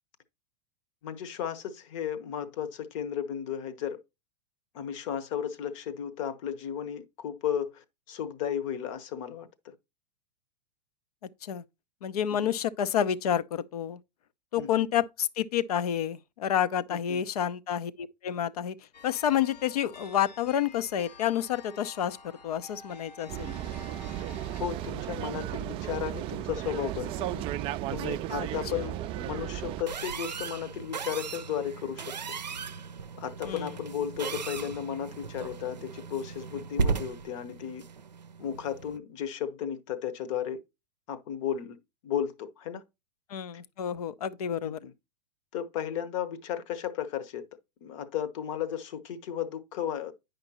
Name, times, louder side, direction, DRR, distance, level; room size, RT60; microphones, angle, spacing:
voice 1, 1.0-4.0 4.7-9.7 12.4-12.5 14.6-14.7 16.9-17.2 24.6-27.5 27.9-32.1 33.2-37.9 38.4-40.6 41.1-41.8 42.0-42.8 44.6-44.9 45.5-47.4 47.8-50.1, left 9 dB, 50° left, 1.0 m, -34 dB
voice 2, 12.0-14.0 14.5-18.7 19.0-22.2 22.4-23.5 33.4-33.7 43.3-44.8, left 10 dB, 65° left, 0.6 m, -29 dB
sound 1, 18.9-24.6, left 4 dB, 80° left, 1.3 m, -50 dB
sound 2, 23.3-29.8, right 13 dB, 25° right, 0.3 m, -34 dB
sound 3, 29.9-39.0, right 5 dB, 85° right, 0.5 m, -36 dB
9.5 x 5.2 x 2.8 m
figure-of-eight pair, 100°, 21 cm